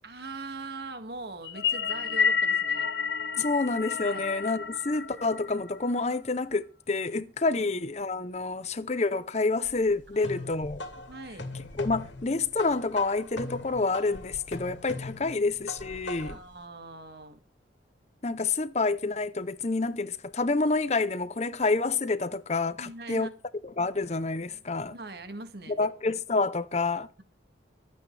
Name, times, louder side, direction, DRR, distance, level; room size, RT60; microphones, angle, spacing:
voice 1, 0.0-2.9 4.1-4.3 10.1-10.5 10.9-11.5 16.2-17.4 22.8-23.3 24.9-25.8, right 3 dB, 55° right, 2.0 m, -42 dB
sound 1, 1.4-6.0, left 6 dB, 60° left, 1.0 m, -30 dB
voice 2, 3.4-10.8 11.8-16.4 18.2-23.3 23.6-24.9 25.8-27.1, left 3 dB, 35° left, 0.7 m, -28 dB
sound 2, 9.6-16.5, left 2 dB, 80° left, 2.3 m, -41 dB
24.5 x 8.6 x 3.3 m
head